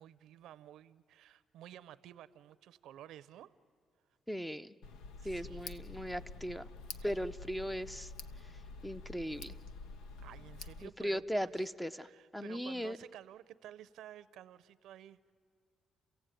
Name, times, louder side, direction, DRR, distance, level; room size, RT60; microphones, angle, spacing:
voice 1, 0.0-3.5 5.2-5.7 7.0-7.3 10.2-11.5 12.0-15.3, right 11 dB, 85° right, 17 dB, 0.6 m, -53 dB
voice 2, 4.3-4.8 5.2-6.7 7.0-8.1 8.4-9.6 10.8-13.0, equal, 5° left, 12 dB, 0.6 m, -38 dB
Tick, 4.8-10.9, left 4 dB, 90° left, 0.8 m, -48 dB
29.5 x 15.5 x 9.1 m, 2.1 s
cardioid pair, 90°, 0 cm